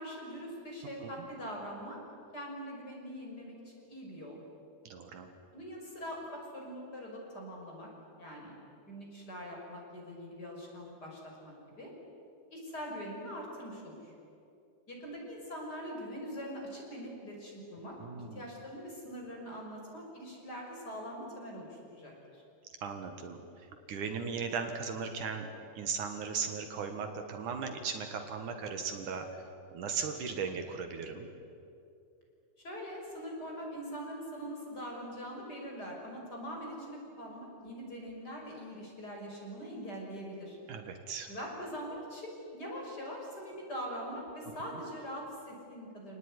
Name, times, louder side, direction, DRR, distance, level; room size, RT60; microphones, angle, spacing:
voice 1, 0.0-2.0 2.3-4.4 5.5-7.9 8.2-8.6 8.9-11.9 12.5-14.1 14.9-18.0 18.3-22.4 32.6-40.6 41.3-46.2, equal, 30° left, -1 dB, 6.2 m, -43 dB
voice 2, 4.8-5.3 18.0-18.4 22.8-23.4 23.9-25.5 25.8-29.4 29.7-31.3 40.7-41.3, right 5 dB, 70° right, 6 dB, 3.1 m, -37 dB
28.0 x 19.0 x 9.8 m, 2.6 s
omnidirectional pair, 3.8 m